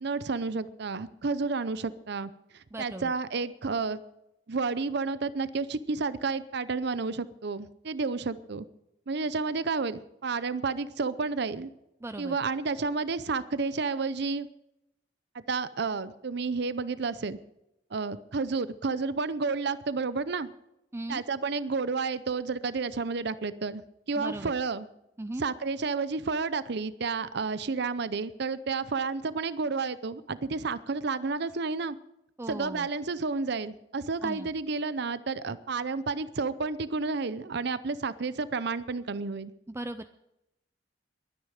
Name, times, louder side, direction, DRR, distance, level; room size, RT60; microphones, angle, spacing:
voice 1, 0.0-4.0 4.5-8.7 9.1-11.7 12.2-14.5 15.3-17.4 17.9-20.5 21.1-23.8 24.1-24.9 25.4-32.0 32.5-39.5, right 4 dB, 65° right, 15 dB, 0.6 m, -31 dB
voice 2, 2.7-3.1 12.0-12.4 20.9-21.2 24.2-24.5 25.2-25.4 32.4-32.9 34.2-34.5 39.7-40.1, right 1 dB, 15° right, 10 dB, 0.4 m, -37 dB
22.0 x 9.7 x 5.0 m, 0.86 s
head